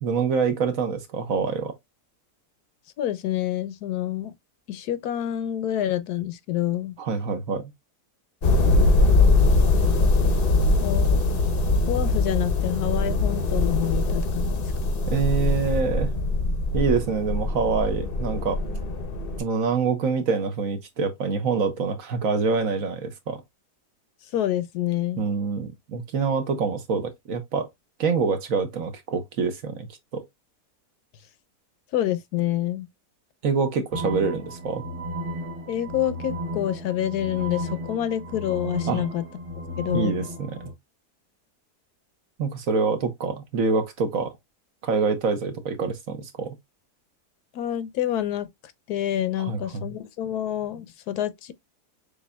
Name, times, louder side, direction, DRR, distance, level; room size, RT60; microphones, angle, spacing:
voice 1, 0.0-1.7 7.0-7.7 15.1-16.1 16.7-18.6 19.4-23.4 25.2-27.7 28.0-29.9 30.1-30.2 33.4-34.8 38.9-39.0 39.9-40.6 42.4-44.3 44.8-46.5 49.4-49.9, right 5 dB, 60° right, 1.2 m, -26 dB
voice 2, 3.0-4.3 4.7-6.9 10.8-11.2 11.9-14.5 14.9-15.0 24.3-25.2 31.9-32.9 35.7-39.2 39.8-40.2 47.5-48.5 48.9-51.5, left 12 dB, 75° left, 1.1 m, -27 dB
sound 1, 8.4-19.4, left 2 dB, 45° left, 0.8 m, -22 dB
sound 2, 33.9-40.7, equal, 90° right, 2.0 m, -34 dB
6.7 x 2.6 x 2.2 m
omnidirectional pair, 1.7 m